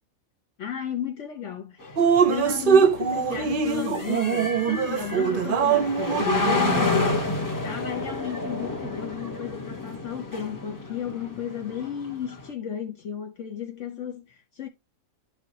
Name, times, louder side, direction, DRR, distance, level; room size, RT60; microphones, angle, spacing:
voice 1, 0.6-2.0 2.3-7.2 7.6-14.7, left 8 dB, 60° left, 1.1 m, -34 dB
sound 1, 1.8-12.5, left 3 dB, 15° left, 0.9 m, -30 dB
Drip, 2.0-7.2, right 6 dB, 50° right, 0.7 m, -23 dB
11.0 x 4.7 x 2.7 m
omnidirectional pair, 1.5 m